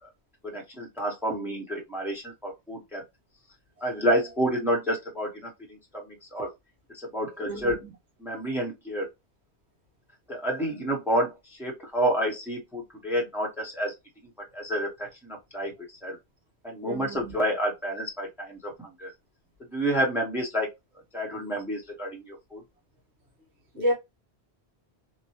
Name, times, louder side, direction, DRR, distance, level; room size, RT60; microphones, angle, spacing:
voice 1, 0.4-3.0 3.8-6.5 6.9-7.8 8.2-9.1 10.3-13.9 14.5-16.2 16.6-19.1 19.6-20.7 21.1-22.6, equal, ahead, 0.8 m, -29 dB
voice 2, 7.4-7.7 16.8-17.3 23.7-23.9, equal, 85° right, 1.4 m, -29 dB
3.0 x 2.1 x 2.7 m
omnidirectional pair, 1.1 m